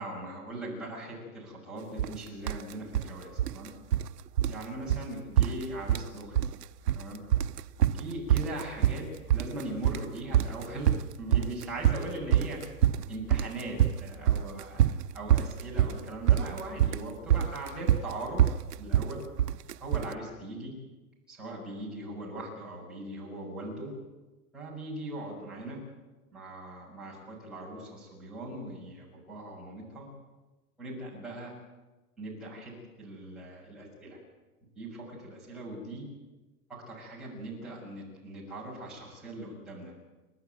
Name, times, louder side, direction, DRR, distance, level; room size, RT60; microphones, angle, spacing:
voice 1, 0.0-3.7 4.5-6.3 6.9-7.2 8.0-12.6 13.1-14.8 15.1-19.2 19.8-20.7 21.3-23.9 24.5-25.8 26.3-30.1 30.8-31.5 32.2-34.2 34.7-36.1 36.7-39.9, right 1 dB, ahead, -8 dB, 6.6 m, -40 dB
sound 1, 2.0-2.2 2.5-3.1 3.4-4.1 4.4-4.6 4.9-5.1 5.4-6.1 6.4-7.0 7.3-20.1, right 11 dB, 85° right, 0.9 m, -25 dB
30.0 x 12.0 x 9.4 m, 1.2 s
hypercardioid pair, 175°, 46 cm